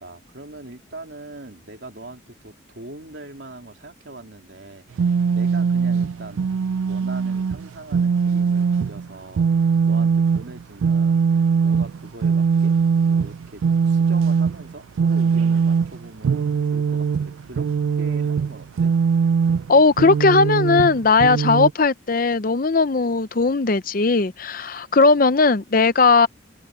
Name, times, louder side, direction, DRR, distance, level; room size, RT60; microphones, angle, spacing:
voice 1, 0.0-6.5 6.8-12.8 13.0-18.9, right 2 dB, 60° right, 3.3 m, -42 dB
sound 1, 4.9-21.7, right 5 dB, 85° right, 0.4 m, -21 dB
voice 2, 19.7-26.3, left 4 dB, 45° left, 0.6 m, -17 dB
head